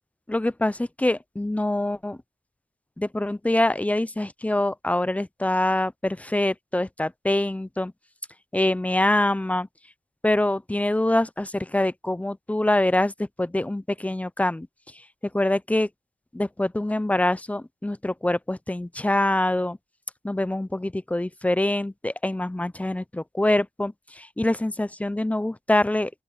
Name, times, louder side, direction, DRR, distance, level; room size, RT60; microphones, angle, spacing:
voice 1, 0.3-2.2 3.0-7.9 8.5-9.7 10.2-14.7 14.9-15.1 15.3-15.9 16.3-19.8 20.2-26.1, left 1 dB, 10° left, 0.6 m, -25 dB
open air
wide cardioid pair, 90°, 16 cm